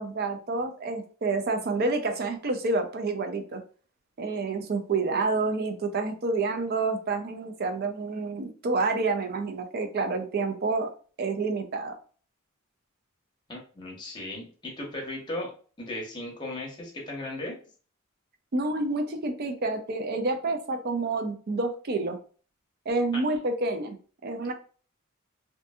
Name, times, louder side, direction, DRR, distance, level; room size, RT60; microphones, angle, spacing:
voice 1, 0.0-3.6 4.2-10.9 11.2-12.0 18.5-22.2 22.9-24.0 24.2-24.5, right 3 dB, 45° right, 7 dB, 0.4 m, -28 dB
voice 2, 13.5-15.5 15.8-17.6, left 1 dB, 20° left, -1 dB, 0.8 m, -36 dB
2.6 x 2.5 x 2.3 m, 0.41 s
head